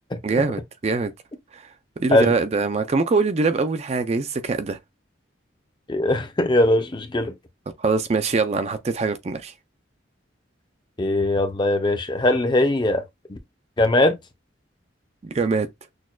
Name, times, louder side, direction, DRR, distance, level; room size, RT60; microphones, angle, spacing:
voice 1, 0.2-1.1 1.5-1.7 2.0-4.8 7.8-9.5 15.2-15.7, right 4 dB, 35° right, 0.4 m, -23 dB
voice 2, 5.9-7.3 11.0-13.0 13.3-13.4 13.8-14.2, left 1 dB, 25° left, 0.5 m, -20 dB
6.2 x 2.2 x 2.2 m
head